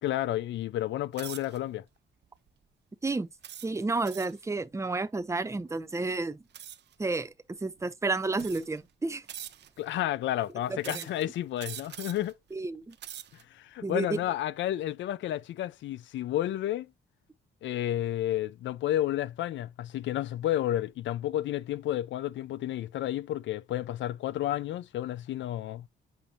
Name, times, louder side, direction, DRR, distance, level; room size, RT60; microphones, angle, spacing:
voice 1, 0.0-1.8 9.8-12.3 13.5-16.9 17.6-25.9, left 13 dB, 70° left, 0.5 m, -31 dB
sound 1, 1.1-1.6 2.2-2.5 3.4-4.4 6.5-6.9 7.8-7.9 8.3-8.8 9.3-9.9 10.8-11.2 11.6-12.3 12.8-13.4, right 10 dB, 60° right, 0.7 m, -43 dB
voice 2, 3.6-6.4 7.0-7.3 7.6-9.2 10.7-11.1 12.5-12.9 13.8-14.2, right 3 dB, 15° right, 0.7 m, -31 dB
7.1 x 5.1 x 2.8 m
cardioid pair, 90°, 20 cm